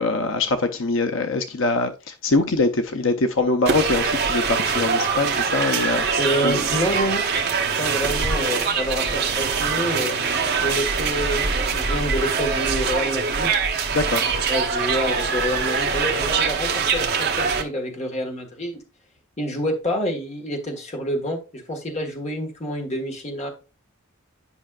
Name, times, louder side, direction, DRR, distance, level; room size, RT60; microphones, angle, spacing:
voice 1, 0.0-6.1 6.4-6.6 13.9-14.2, left 3 dB, 65° left, 0.6 m, -23 dB
sound 1, 3.7-17.6, right 5 dB, 50° right, 1.2 m, -23 dB
sound 2, 5.8-7.1 7.4-7.9 8.2-9.1 9.5-10.1 10.3-10.8, right 2 dB, 25° right, 3.0 m, -43 dB
voice 2, 6.2-7.3 7.8-10.2 10.6-13.5 14.5-18.8 19.4-23.5, equal, 30° left, 1.4 m, -27 dB
10.0 x 5.5 x 2.4 m
head